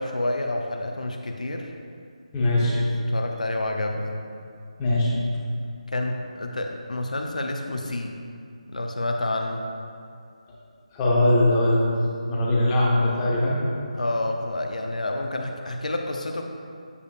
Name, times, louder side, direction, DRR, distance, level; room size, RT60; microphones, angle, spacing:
voice 1, 0.0-1.7 2.7-4.1 5.9-8.2 8.7-9.6 13.9-16.5, left 2 dB, 85° left, 3 dB, 0.6 m, -29 dB
voice 2, 2.3-2.8 4.8-5.1 10.9-11.9 12.3-13.6, left 1 dB, 15° left, -6 dB, 1.1 m, -21 dB
8.2 x 5.1 x 2.4 m, 2.4 s
figure-of-eight pair, 160°, 4 cm